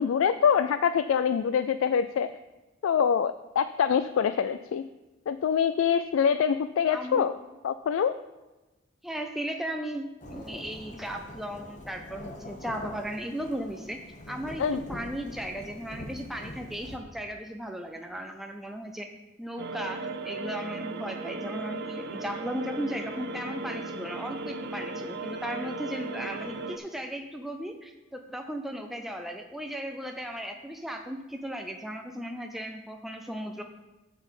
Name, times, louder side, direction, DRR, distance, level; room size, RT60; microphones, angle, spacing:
voice 1, 0.0-2.3 2.8-4.9 5.3-7.3 7.6-8.1 14.6-14.8, left 7 dB, 80° left, 11 dB, 0.3 m, -25 dB
voice 2, 6.9-7.3 9.0-14.0 14.3-19.1 19.4-33.6, equal, ahead, 4 dB, 0.4 m, -36 dB
Thunderstorm / Rain, 10.2-17.0, left 1 dB, 40° left, 1.1 m, -44 dB
sound 1, 19.6-26.8, right 2 dB, 55° right, 0.5 m, -36 dB
9.7 x 4.0 x 7.3 m, 1.1 s
head